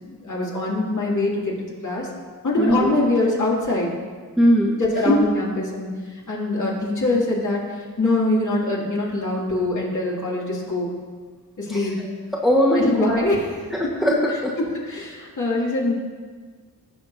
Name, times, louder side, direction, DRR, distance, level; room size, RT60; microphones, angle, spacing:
voice 1, 0.1-2.1 2.4-3.9 4.8-5.9 6.3-7.6 8.0-10.9 11.6-11.9 12.7-13.6 14.6-15.9, left 2 dB, 50° left, -5 dB, 2.7 m, -23 dB
voice 2, 2.6-3.0 4.4-4.8 5.0-5.1 11.7-12.1 12.3-13.3 13.7-14.6, equal, ahead, -4 dB, 1.4 m, -20 dB
16.5 x 5.8 x 2.7 m, 1.5 s
cardioid pair, 70°, 37 cm